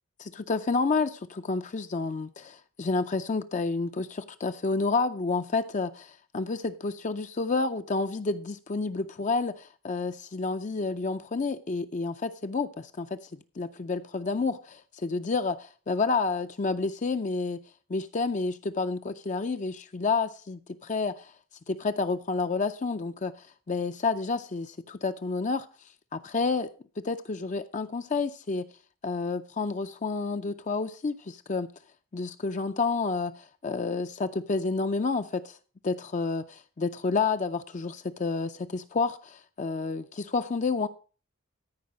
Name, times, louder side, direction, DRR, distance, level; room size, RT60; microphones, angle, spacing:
voice 1, 0.2-13.2 13.6-17.6 17.9-21.3 21.7-23.3 23.7-25.7 26.1-26.7 27.0-28.6 29.0-31.7 32.1-35.6 35.8-40.9, left 4 dB, 35° left, 0.4 m, -30 dB
13.5 x 4.8 x 6.0 m
head